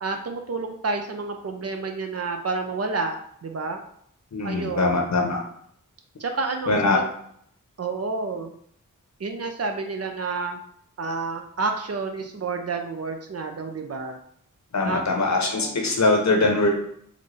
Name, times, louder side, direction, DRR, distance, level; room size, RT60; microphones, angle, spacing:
voice 1, 0.0-3.8 4.4-5.1 6.2-7.1 7.8-8.5 9.2-10.6 11.0-14.2 14.8-15.2 15.4-15.9, right 3 dB, 50° right, 4 dB, 0.5 m, -30 dB
voice 2, 4.3-5.4 6.7-7.0 14.7-16.7, left 2 dB, 55° left, 1 dB, 0.9 m, -22 dB
3.9 x 2.0 x 3.3 m, 0.67 s
cardioid pair, 45°, 32 cm